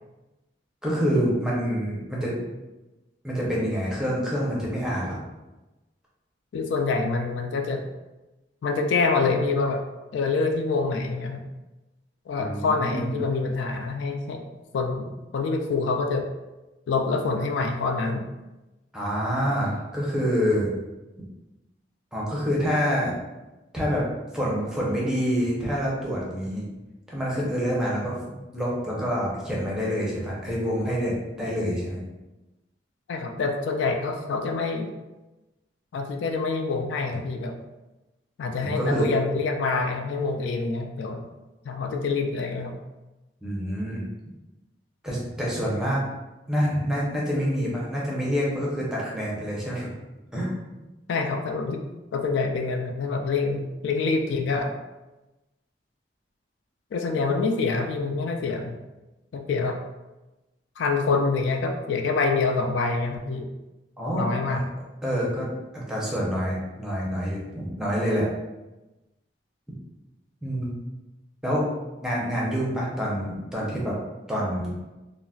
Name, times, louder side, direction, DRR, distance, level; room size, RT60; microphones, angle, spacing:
voice 1, 0.8-2.4 3.2-5.2 12.3-13.2 18.9-20.7 22.1-23.1 23.7-24.0 24.3-26.6 27.1-32.0 38.6-39.1 43.4-44.0 45.0-46.0 46.5-49.9 50.3-50.5 64.0-64.7 65.0-68.3 70.4-70.8 71.4-71.6 72.0-74.0 74.3-74.7, equal, 5° right, -5 dB, 0.6 m, -27 dB
voice 2, 6.5-7.8 8.6-9.8 10.1-11.4 12.3-14.4 14.7-16.3 16.9-18.2 33.1-34.9 35.9-37.6 38.4-41.2 41.7-42.8 51.1-51.8 52.1-54.7 56.9-58.8 59.3-59.8 60.8-63.5 64.1-64.6, left 4 dB, 75° left, 4 dB, 0.3 m, -26 dB
3.8 x 2.1 x 2.3 m, 1.1 s
head